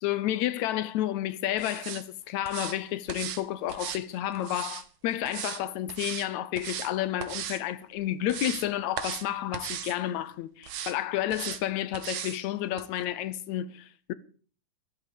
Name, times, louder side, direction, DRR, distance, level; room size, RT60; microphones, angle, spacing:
voice 1, 0.0-14.1, left 12 dB, 70° left, 1.8 m, -31 dB
sound 1, 1.6-2.0 2.5-2.8 3.1-3.4 3.7-4.8 5.3-5.6 5.9-6.3 6.6-6.9 7.2-7.6 8.0-8.7 9.0-9.3 9.5-10.0 10.6-10.9 11.3-11.6 11.9-12.4 12.8-12.9, right 10 dB, 65° right, 2.3 m, -37 dB
14.5 x 11.5 x 6.7 m
omnidirectional pair, 3.9 m